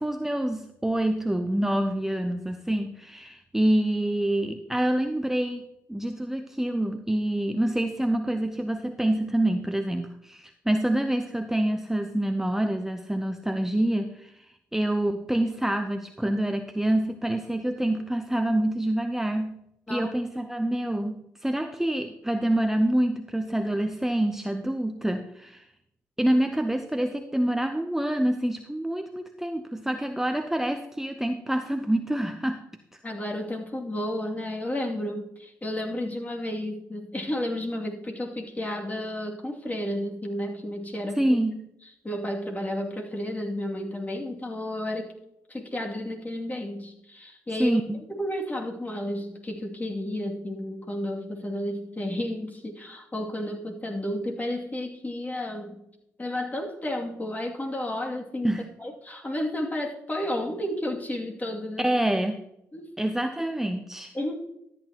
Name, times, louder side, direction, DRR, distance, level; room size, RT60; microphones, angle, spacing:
voice 1, 0.0-14.5 14.7-19.6 19.9-25.7 26.2-32.6 41.2-41.7 47.6-48.0 58.4-58.7 61.8-62.4 63.0-64.1, right 1 dB, 5° right, 6 dB, 0.8 m, -26 dB
voice 2, 33.0-41.2 42.0-45.1 45.5-47.8 48.1-55.8 56.2-58.5 58.8-61.9 62.7-62.9 64.1-64.4, left 1 dB, 25° left, 0 dB, 2.5 m, -32 dB
13.0 x 9.0 x 3.0 m, 0.77 s
supercardioid pair, 50°, 7 cm